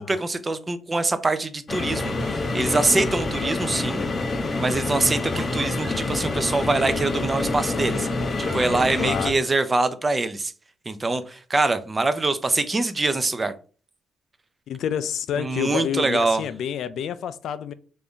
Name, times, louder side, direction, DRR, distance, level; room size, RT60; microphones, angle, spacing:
voice 1, 0.0-4.0 4.6-8.1 8.4-10.5 10.9-13.5 15.4-16.4, right 3 dB, 25° right, 0.4 m, -24 dB
sound 1, 1.7-9.3, left 3 dB, 35° left, 0.6 m, -27 dB
sound 2, 4.4-7.3 7.8-8.9, right 4 dB, 65° right, 0.8 m, -45 dB
voice 2, 9.0-9.3 14.7-17.7, left 9 dB, 70° left, 0.3 m, -28 dB
3.4 x 2.5 x 3.5 m
cardioid pair, 90°, 0 cm